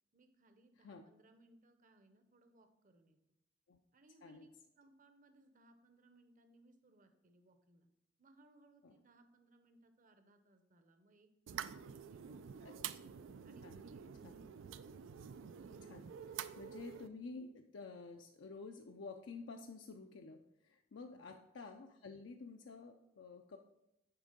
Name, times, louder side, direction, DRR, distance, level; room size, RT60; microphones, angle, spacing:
voice 1, 0.1-3.2 3.9-4.5 4.7-7.9 8.2-13.0 13.4-14.1 21.1-21.4, right 2 dB, 45° right, 8 dB, 0.8 m, -67 dB
sound 1, 11.5-17.1, right 8 dB, 90° right, 0.4 m, -48 dB
voice 2, 12.6-12.9 13.6-13.8 14.2-14.4 15.4-15.6 15.8-23.6, left 4 dB, 75° left, 4 dB, 0.5 m, -51 dB
9.4 x 3.7 x 5.1 m, 0.88 s
head